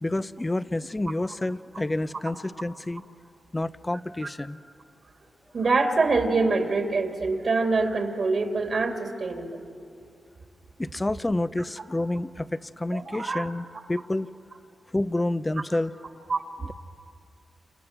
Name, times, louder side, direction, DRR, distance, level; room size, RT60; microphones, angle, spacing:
voice 1, 0.0-3.0 3.5-4.6 10.8-14.3 14.9-15.9, left 2 dB, 20° left, 14 dB, 0.7 m, -29 dB
voice 2, 5.5-9.6 12.9-13.5 16.3-16.4, right 3 dB, 60° right, 4 dB, 2.8 m, -25 dB
30.0 x 28.5 x 6.1 m, 2.4 s
cardioid pair, 55°, 0 cm